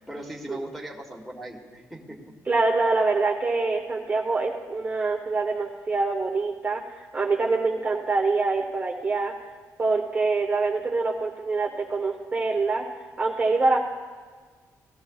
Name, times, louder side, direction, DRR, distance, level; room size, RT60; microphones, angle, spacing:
voice 1, 0.0-2.2, right 1 dB, ahead, 1 dB, 1.4 m, -39 dB
voice 2, 2.5-9.3 9.8-12.8 13.2-13.8, right 3 dB, 25° right, 0 dB, 0.8 m, -25 dB
17.5 x 13.0 x 2.4 m, 1.5 s
cardioid pair, 145°, 6 cm